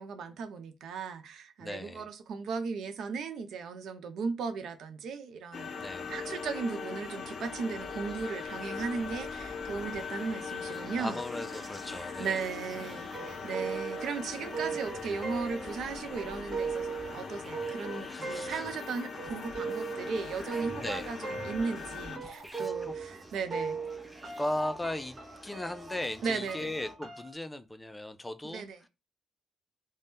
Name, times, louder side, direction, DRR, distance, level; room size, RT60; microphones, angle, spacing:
voice 1, 0.0-11.2 12.2-23.8 26.2-26.8 28.4-28.8, right 5 dB, 75° right, 0.5 m, -36 dB
voice 2, 1.6-2.1 5.8-6.1 11.0-12.4 18.1-18.6 20.8-21.1 22.6-22.9 24.4-28.6, left 1 dB, 10° left, 0.3 m, -37 dB
sound 1, 5.5-22.2, left 5 dB, 50° left, 0.6 m, -41 dB
sound 2, 7.8-26.9, right 1 dB, 15° right, 0.7 m, -50 dB
sound 3, 13.1-23.2 23.5-27.3, right 5 dB, 35° right, 1.1 m, -39 dB
2.6 x 2.2 x 3.4 m
cardioid pair, 90°, 0 cm